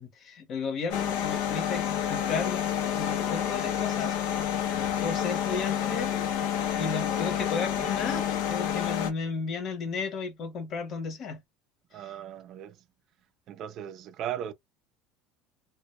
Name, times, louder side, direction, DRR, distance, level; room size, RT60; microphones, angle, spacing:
voice 1, 0.0-2.7 3.0-4.2 5.0-6.1 6.8-11.4, left 5 dB, 40° left, 0.8 m, -34 dB
sound 1, 0.9-9.1, left 9 dB, 70° left, 0.5 m, -29 dB
voice 2, 11.9-12.8 13.5-14.5, right 10 dB, 45° right, 0.4 m, -37 dB
2.1 x 2.0 x 2.9 m
cardioid pair, 145°, 0 cm